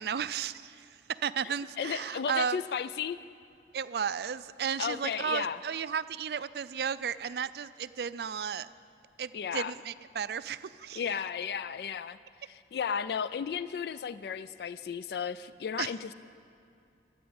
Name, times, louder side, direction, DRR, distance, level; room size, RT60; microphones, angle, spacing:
voice 1, 0.0-2.6 3.7-8.7 9.2-11.0 15.8-15.9, right 7 dB, 65° right, 15 dB, 0.4 m, -34 dB
voice 2, 1.8-3.2 4.8-5.6 9.3-9.7 11.0-12.2 12.5-16.1, left 7 dB, 65° left, 15 dB, 0.3 m, -34 dB
13.5 x 8.1 x 8.6 m, 2.5 s
head